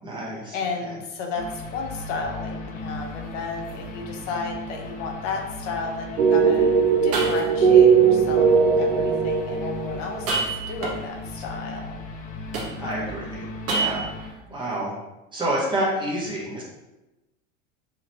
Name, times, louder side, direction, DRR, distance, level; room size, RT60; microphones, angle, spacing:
voice 1, 0.0-0.6 0.9-1.0 12.8-15.0 15.3-16.6, right 1 dB, 10° right, -6 dB, 1.3 m, -29 dB
voice 2, 0.5-6.7 7.0-10.3 10.7-12.0 12.8-13.2 14.5-14.6, left 4 dB, 70° left, 2 dB, 0.9 m, -33 dB
sound 1, 1.3-14.3, left 2 dB, 20° left, 0.4 m, -37 dB
sound 2, 2.8-3.1 3.7-3.8 4.4-4.5 6.5-6.6 7.1-7.8 10.1-11.3 12.5-13.1 13.7-14.3, right 3 dB, 35° right, 1.2 m, -28 dB
sound 3, 6.2-10.2, right 6 dB, 85° right, 0.9 m, -18 dB
4.8 x 3.0 x 2.9 m, 1.0 s
supercardioid pair, 120°, 39 cm